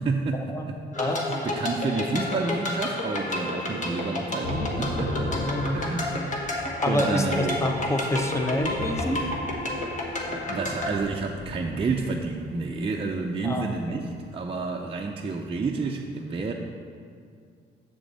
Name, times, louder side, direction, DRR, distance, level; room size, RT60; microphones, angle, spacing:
voice 1, 0.0-5.3 5.7-6.3 6.9-7.6 10.3-16.5, right 3 dB, 30° right, 0 dB, 0.5 m, -30 dB
sound 1, 0.9-10.9, left 1 dB, 40° left, 1.4 m, -31 dB
Thunder / Rain, 4.4-14.4, left 1 dB, 60° left, 1.9 m, -37 dB
voice 2, 5.3-5.8 6.8-9.2 13.4-14.0, left 1 dB, 15° left, 4 dB, 0.8 m, -27 dB
7.1 x 6.8 x 4.1 m, 2.2 s
cardioid pair, 90°, 20 cm